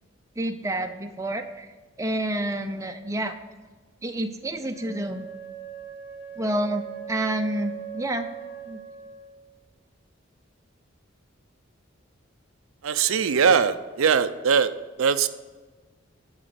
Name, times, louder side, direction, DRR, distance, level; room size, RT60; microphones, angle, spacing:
voice 1, 0.4-1.7 2.0-3.4 4.0-5.3 6.4-8.3 8.7-8.8, right 1 dB, 15° right, 6 dB, 0.5 m, -29 dB
Wind instrument woodwind instrument, 4.7-9.3, right 8 dB, 45° left, 3.6 m, -40 dB
voice 2, 12.8-14.7 15.0-15.3, right 6 dB, 90° right, 12 dB, 0.5 m, -21 dB
10.5 x 4.0 x 7.7 m, 1.3 s
head